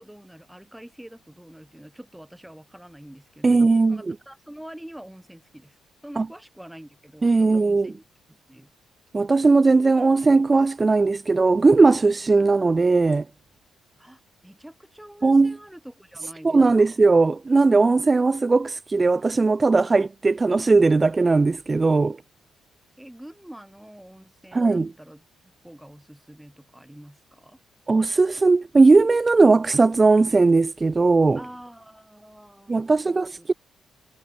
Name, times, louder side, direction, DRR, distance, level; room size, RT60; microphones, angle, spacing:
voice 1, 0.0-5.8 6.0-8.7 14.0-17.0 23.0-25.2 25.6-27.6 31.4-32.8 33.0-33.6, right 1 dB, 5° right, 7.5 m, -46 dB
voice 2, 3.4-4.1 6.2-6.3 7.2-7.9 9.1-13.2 15.2-15.6 16.4-22.2 24.5-24.9 27.9-31.4 32.7-33.5, right 3 dB, 25° right, 0.5 m, -18 dB
cardioid pair, 90°, 0 cm